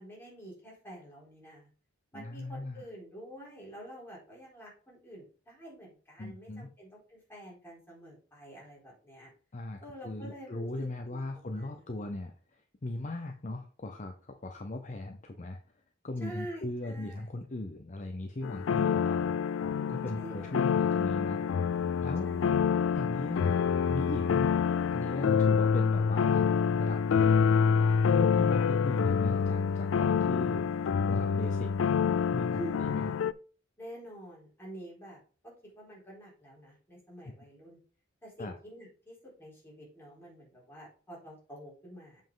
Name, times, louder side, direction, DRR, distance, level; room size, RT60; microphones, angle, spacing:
voice 1, 0.0-1.7 2.1-9.3 9.8-10.7 11.1-11.2 11.5-11.9 16.2-17.2 20.1-20.8 22.2-22.6 32.5-32.8 33.8-37.8 38.2-42.2, right 1 dB, 10° left, -5 dB, 3.9 m, -47 dB
voice 2, 2.1-2.8 6.2-6.7 9.5-15.6 16.0-19.4 19.9-21.5 22.0-22.3 22.9-23.6 23.9-24.5 24.9-27.0 28.0-30.8 31.1-31.7 32.3-33.1 38.4-38.5, left 2 dB, 40° left, 5 dB, 0.7 m, -38 dB
sound 1, 18.4-33.3, left 6 dB, 70° left, 0.3 m, -27 dB
7.5 x 5.4 x 3.8 m, 0.40 s
head